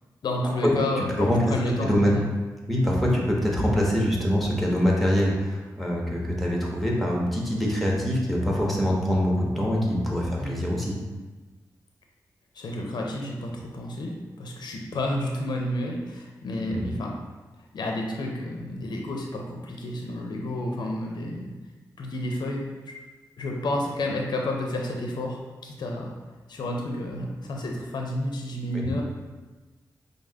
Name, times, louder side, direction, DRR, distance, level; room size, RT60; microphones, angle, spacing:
voice 1, 0.2-2.3 10.4-10.7 12.5-17.1 17.6-21.6 22.0-22.9 23.4-26.1 26.5-29.0, left 1 dB, 75° left, 0 dB, 0.5 m, -30 dB
voice 2, 1.8-2.1 2.7-11.0 16.7-16.8 28.7-28.9, equal, ahead, -3 dB, 1.1 m, -24 dB
5.1 x 2.0 x 3.5 m, 1.2 s
cardioid pair, 45°, 7 cm